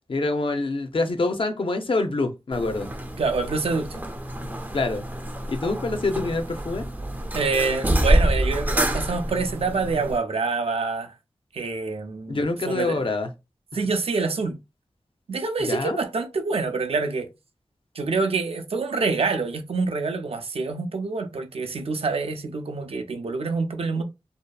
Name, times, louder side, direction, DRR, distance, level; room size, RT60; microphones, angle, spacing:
voice 1, 0.1-2.9 4.7-5.0 5.5-6.9 12.3-13.3 15.6-16.0, left 2 dB, 55° left, 0.6 m, -26 dB
sound 1, 2.5-10.2, right 1 dB, 15° right, 0.5 m, -27 dB
voice 2, 3.2-3.9 7.3-11.1 11.5-12.4 12.7-13.0 13.7-14.6 15.3-17.3 18.0-24.0, right 4 dB, 65° right, 0.5 m, -26 dB
2.7 x 2.2 x 2.3 m
cardioid pair, 45°, 11 cm